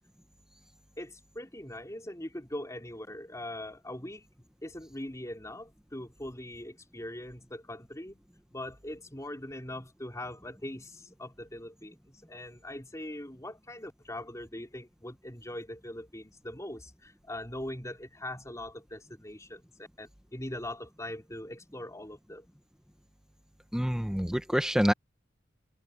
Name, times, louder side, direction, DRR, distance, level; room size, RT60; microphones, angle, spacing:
voice 1, 1.0-8.2 8.5-22.5, left 1 dB, 15° left, 3.6 m, -41 dB
voice 2, 23.7-24.9, equal, 5° right, 1.1 m, -27 dB
head